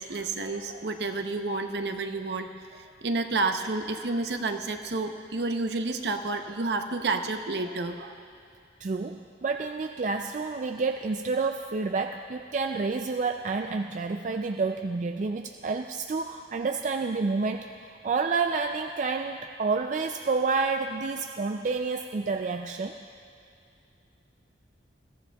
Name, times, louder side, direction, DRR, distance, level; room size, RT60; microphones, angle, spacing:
voice 1, 0.0-8.2, right 3 dB, 65° right, 6 dB, 0.8 m, -30 dB
voice 2, 8.8-23.0, right 4 dB, 45° right, 5 dB, 0.4 m, -29 dB
22.0 x 15.0 x 2.3 m, 2.5 s
head